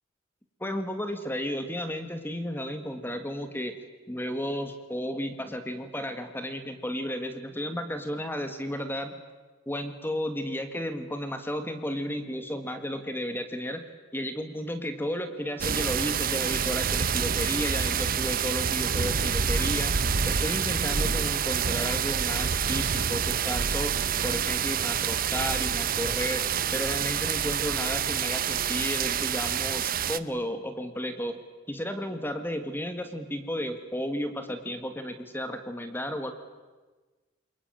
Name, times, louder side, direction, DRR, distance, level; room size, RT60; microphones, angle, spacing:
voice 1, 0.6-3.8 4.1-9.2 9.6-13.8 14.1-20.0 20.2-26.4 26.7-31.4 31.7-36.3, equal, 10° left, 8 dB, 1.7 m, -33 dB
sound 1, 15.6-30.2, right 7 dB, 45° right, 0.8 m, -27 dB
27.5 x 22.5 x 9.0 m, 1.3 s
head